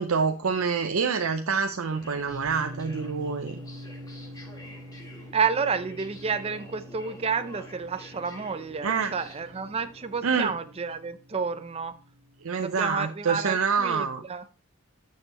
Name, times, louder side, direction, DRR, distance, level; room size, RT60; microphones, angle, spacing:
voice 1, 0.0-3.5 8.8-9.1 10.2-10.5 12.4-14.2, right 5 dB, 85° right, 6 dB, 0.6 m, -26 dB
sound 1, 1.6-10.2, left 1 dB, 20° left, 1.8 m, -49 dB
sound 2, 2.3-12.5, equal, 50° right, 1.1 m, -45 dB
voice 2, 5.3-11.9 12.6-14.4, right 5 dB, 30° right, 10 dB, 0.5 m, -30 dB
9.7 x 6.6 x 2.9 m, 0.36 s
head